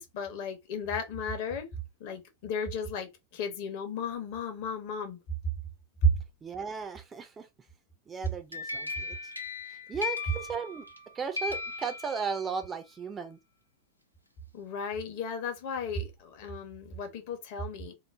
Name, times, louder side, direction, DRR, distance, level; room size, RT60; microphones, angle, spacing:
voice 1, 0.0-1.7 2.0-5.2 6.0-6.1 14.5-17.9, left 1 dB, 50° left, 0.8 m, -33 dB
voice 2, 6.4-7.5 8.1-9.1 9.9-10.9 11.2-13.4, right 5 dB, 20° right, 0.4 m, -35 dB
sound 1, 8.3-11.0 11.3-12.6, left 4 dB, 85° left, 0.4 m, -37 dB
3.0 x 2.0 x 2.3 m
figure-of-eight pair, 90°, 0 cm